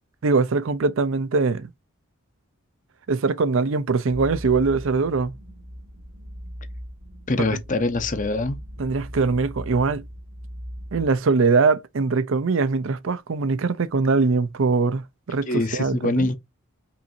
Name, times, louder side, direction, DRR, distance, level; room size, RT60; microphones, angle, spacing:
voice 1, 0.2-1.7 3.1-5.3 8.8-10.0 10.9-16.3, right 4 dB, 65° right, 0.5 m, -22 dB
sound 1, 4.1-11.2, equal, 85° right, 1.9 m, -38 dB
voice 2, 7.3-8.6 15.5-16.4, left 2 dB, 35° left, 0.7 m, -24 dB
5.5 x 2.6 x 2.6 m
head